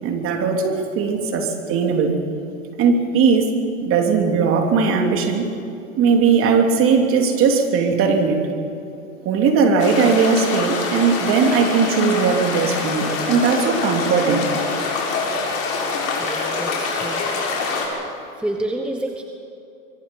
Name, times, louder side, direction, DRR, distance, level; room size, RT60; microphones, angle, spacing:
voice 1, 0.0-2.1 2.8-3.5 3.8-5.5 6.0-8.4 9.2-14.5, right 5 dB, 30° right, 3 dB, 3.1 m, -18 dB
sound 1, 9.8-17.9, left 4 dB, 40° left, 7.0 m, -25 dB
voice 2, 16.2-17.3 17.6-17.7 18.4-19.2, right 1 dB, 5° right, 3 dB, 1.0 m, -29 dB
24.5 x 24.0 x 5.5 m, 2.7 s
hypercardioid pair, 125°, 41 cm